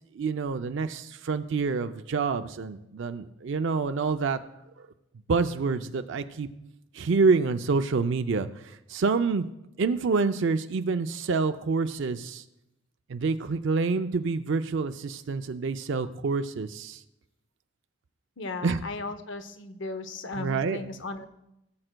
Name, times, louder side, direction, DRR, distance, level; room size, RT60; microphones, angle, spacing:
voice 1, 0.1-4.4 4.8-4.9 5.3-6.5 6.9-9.5 9.8-12.4 13.1-17.0 18.6-18.8 20.4-20.8, right 4 dB, 60° right, 9 dB, 0.4 m, -27 dB
voice 2, 18.4-21.3, left 2 dB, 55° left, 10 dB, 0.7 m, -36 dB
18.0 x 7.7 x 2.2 m, 0.86 s
head